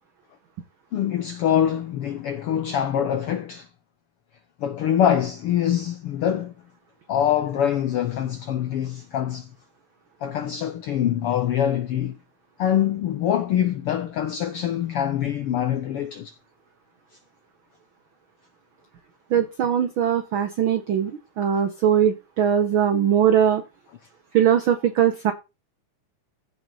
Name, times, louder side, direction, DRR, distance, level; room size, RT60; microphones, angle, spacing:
voice 1, 0.9-3.7 4.6-6.5 7.1-9.5 10.2-12.2 12.6-16.3, left 10 dB, 80° left, 1.3 m, -24 dB
voice 2, 19.3-21.1 21.4-23.6 24.3-25.3, right 9 dB, 90° right, 1.1 m, -20 dB
15.5 x 5.5 x 4.1 m
omnidirectional pair, 3.6 m